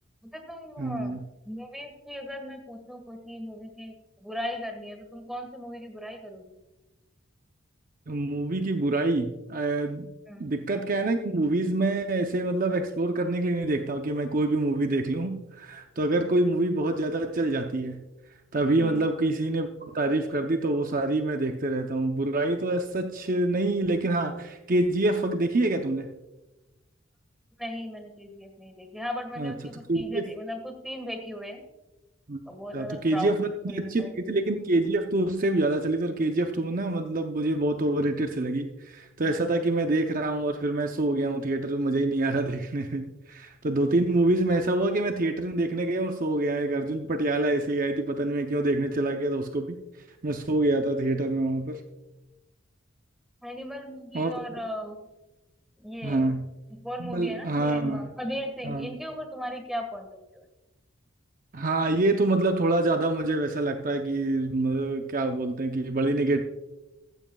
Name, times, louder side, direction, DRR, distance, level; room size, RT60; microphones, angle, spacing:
voice 1, 0.2-1.2 1.4-6.5 10.3-10.5 18.8-19.0 27.6-31.6 32.5-34.1 53.4-55.1 55.8-56.4 56.7-60.4, equal, ahead, 5 dB, 1.6 m, -37 dB
voice 2, 0.8-1.2 8.1-10.1 10.4-18.1 18.5-26.1 29.4-29.5 29.9-30.3 32.3-32.4 32.7-33.5 33.7-49.8 50.2-51.8 54.1-54.4 56.0-56.5 57.0-58.1 58.6-58.9 61.5-66.4, right 2 dB, 45° right, 5 dB, 0.7 m, -26 dB
14.5 x 14.5 x 2.3 m, 1.0 s
head